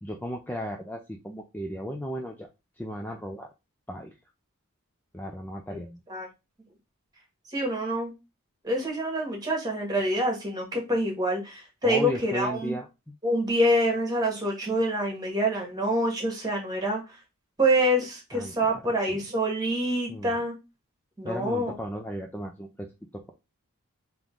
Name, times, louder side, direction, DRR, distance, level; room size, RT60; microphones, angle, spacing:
voice 1, 0.0-2.5 2.8-3.5 3.9-4.1 5.1-6.0 11.8-13.1 18.3-18.5 19.1-19.2 20.1-20.4 21.2-22.9 23.1-23.3, equal, 10° left, 2 dB, 0.4 m, -35 dB
voice 2, 7.5-8.1 8.6-12.7 13.2-17.0 17.6-20.5 21.2-21.7, equal, 20° right, 1 dB, 1.5 m, -26 dB
3.7 x 3.0 x 3.7 m, 0.25 s
head